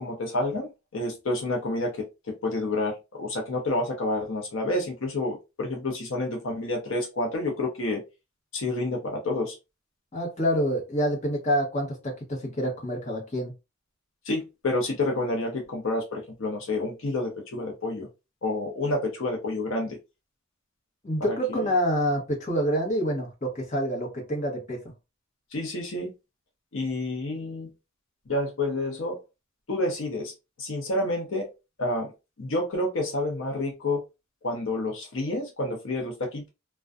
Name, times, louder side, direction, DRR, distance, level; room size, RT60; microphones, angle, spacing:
voice 1, 0.0-2.1 2.4-8.0 8.5-9.6 14.2-18.1 18.4-20.0 21.3-21.6 25.5-26.1 26.7-27.7 28.3-29.2 29.7-30.3 30.6-31.5 31.8-32.1 32.4-34.0 34.4-36.5, left 2 dB, 70° left, 0 dB, 0.6 m, -29 dB
voice 2, 10.1-13.5 21.0-24.8, equal, 35° left, -1 dB, 0.9 m, -27 dB
2.5 x 2.2 x 2.3 m, 0.26 s
head